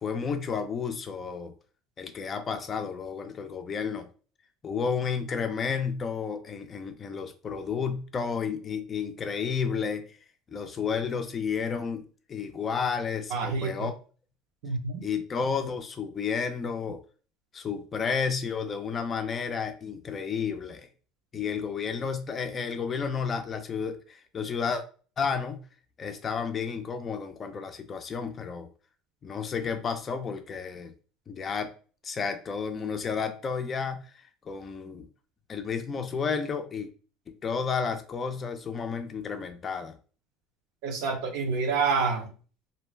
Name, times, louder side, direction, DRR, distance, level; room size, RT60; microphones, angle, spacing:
voice 1, 0.0-1.5 2.0-4.1 4.6-10.2 10.5-12.0 12.3-13.9 15.0-17.0 17.5-20.9 21.3-24.8 25.2-25.6 26.0-28.7 29.2-30.9 31.3-31.7 32.0-35.1 35.5-36.9 37.3-39.9, left 6 dB, 25° left, 7 dB, 0.4 m, -31 dB
voice 2, 13.3-13.9 14.6-15.0 40.8-42.3, right 4 dB, 70° right, 5 dB, 0.6 m, -28 dB
2.5 x 2.1 x 3.1 m, 0.37 s
cardioid pair, 150°, 0 cm